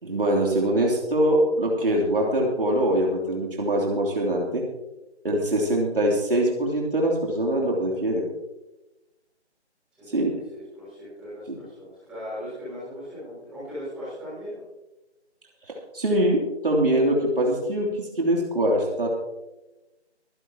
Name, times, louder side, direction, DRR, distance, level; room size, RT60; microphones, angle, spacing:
voice 1, 0.0-4.6 5.2-8.3 10.1-10.3 11.5-11.6 15.7-19.1, right 1 dB, 50° right, -1 dB, 3.2 m, -23 dB
voice 2, 9.9-14.6, equal, 5° right, -13 dB, 6.1 m, -38 dB
24.0 x 11.0 x 2.9 m, 0.98 s
figure-of-eight pair, 165°, 34 cm